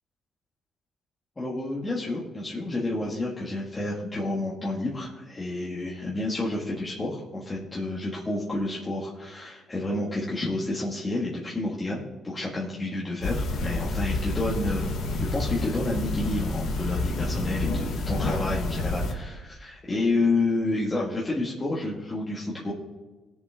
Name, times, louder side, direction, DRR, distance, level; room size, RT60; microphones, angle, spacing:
voice 1, 1.4-15.0 15.3-22.7, left 2 dB, 25° left, -5 dB, 2.1 m, -30 dB
Typing with bracelet On, 13.2-19.1, left 2 dB, 75° left, 1.6 m, -29 dB
18.5 x 7.1 x 3.8 m, 1.2 s
cardioid pair, 90°, 0 cm